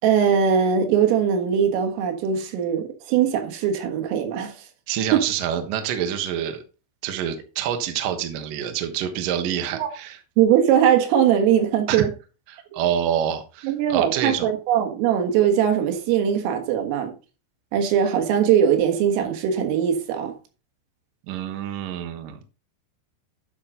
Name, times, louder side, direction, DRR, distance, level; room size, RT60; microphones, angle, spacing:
voice 1, 0.0-4.5 5.1-5.2 9.7-9.9 10.4-12.1 13.6-17.1 17.7-20.3, right 8 dB, 90° right, 4.2 m, -20 dB
voice 2, 4.9-6.6 7.0-10.2 11.9-12.1 12.5-14.5 21.3-22.4, right 9 dB, 65° right, 2.2 m, -27 dB
11.5 x 6.1 x 3.8 m
omnidirectional pair, 5.7 m